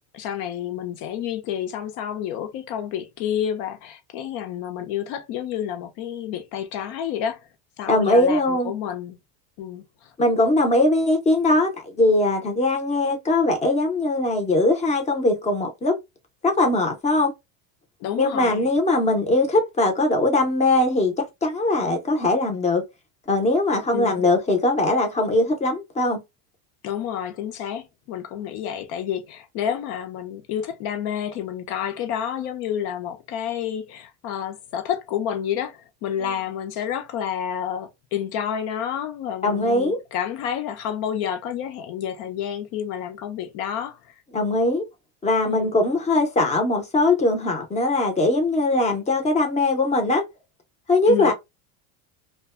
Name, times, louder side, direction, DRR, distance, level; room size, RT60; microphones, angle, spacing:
voice 1, 0.1-7.5 7.8-9.2 9.6-10.1 18.0-18.6 23.9-24.2 26.8-44.1 45.4-45.7 51.1-51.3, left 9 dB, 60° left, 0.8 m, -29 dB
voice 2, 7.9-8.7 10.2-16.0 16.4-17.3 18.2-22.8 23.3-26.2 39.4-40.0 44.3-44.8 45.2-50.2 50.9-51.3, left 2 dB, 15° left, 0.7 m, -21 dB
2.6 x 2.3 x 2.3 m
cardioid pair, 140°, 44 cm